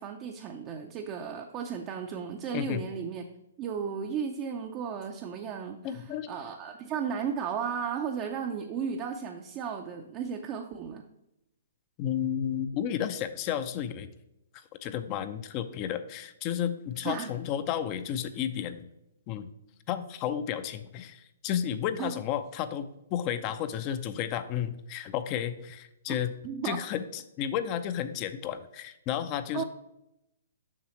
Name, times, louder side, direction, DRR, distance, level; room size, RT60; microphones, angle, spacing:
voice 1, 0.0-3.2 3.6-11.0 17.0-17.3 22.0-22.2 26.1-26.2 26.4-26.8 29.5-29.6, right 7 dB, 30° right, 3 dB, 0.5 m, -34 dB
voice 2, 5.8-6.3 12.0-14.1 14.8-18.9 19.3-19.5 19.9-26.3 26.6-29.6, left 9 dB, 35° left, 11 dB, 0.5 m, -32 dB
7.2 x 5.5 x 3.0 m, 0.86 s
hypercardioid pair, 135°, 0 cm